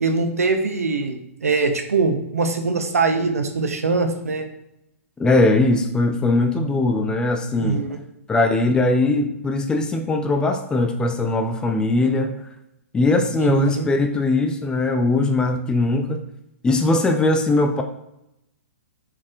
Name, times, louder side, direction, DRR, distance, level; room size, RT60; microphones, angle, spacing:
voice 1, 0.0-4.5 7.6-8.0 13.4-13.9, right 4 dB, 80° right, 6 dB, 0.6 m, -22 dB
voice 2, 5.2-7.9 8.3-12.3 12.9-16.2 16.6-17.8, left 2 dB, 10° left, 5 dB, 0.3 m, -20 dB
4.3 x 3.5 x 2.4 m, 0.83 s
figure-of-eight pair, 120°, 8 cm